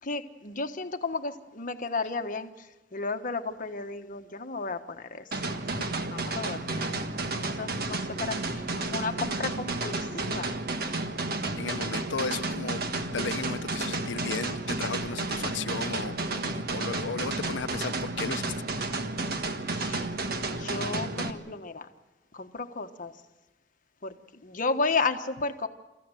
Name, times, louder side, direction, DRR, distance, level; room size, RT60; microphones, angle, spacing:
voice 1, 0.0-5.4 5.9-6.9 7.4-10.6 19.7-20.1 20.6-21.9 22.3-23.1 24.0-25.7, left 4 dB, 45° left, 1.3 m, -33 dB
sound 1, 5.3-21.3, right 2 dB, 55° right, 1.5 m, -32 dB
voice 2, 11.6-12.8 13.1-18.5, left 5 dB, 85° left, 0.7 m, -35 dB
28.0 x 14.5 x 9.1 m
head